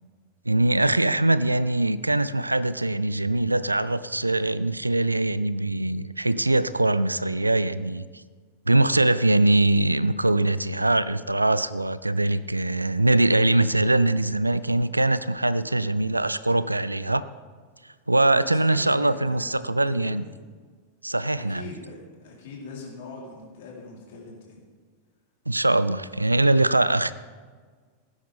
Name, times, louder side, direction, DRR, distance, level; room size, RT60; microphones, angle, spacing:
voice 1, 0.5-8.0 8.7-17.2 18.1-20.2 21.0-21.6 25.5-27.1, right 2 dB, 85° right, 16 dB, 0.4 m, -22 dB
voice 2, 18.3-20.3 21.3-24.6, left 4 dB, 55° left, -3 dB, 3.8 m, -42 dB
18.0 x 10.0 x 3.6 m, 1.5 s
figure-of-eight pair, 90°, 0 cm